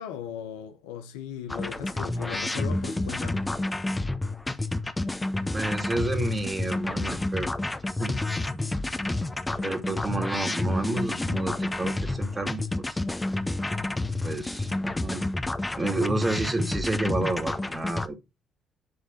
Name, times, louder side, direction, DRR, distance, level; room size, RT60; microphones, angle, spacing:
voice 1, 0.0-3.4, left 9 dB, 85° left, 0.9 m, -38 dB
sound 1, 1.5-18.1, left 2 dB, 15° left, 1.1 m, -29 dB
voice 2, 5.5-7.5 8.0-8.2 9.6-13.0 14.2-15.2 15.8-18.2, right 2 dB, 25° right, 2.5 m, -30 dB
10.5 x 3.6 x 4.3 m
hypercardioid pair, 50°, 0 cm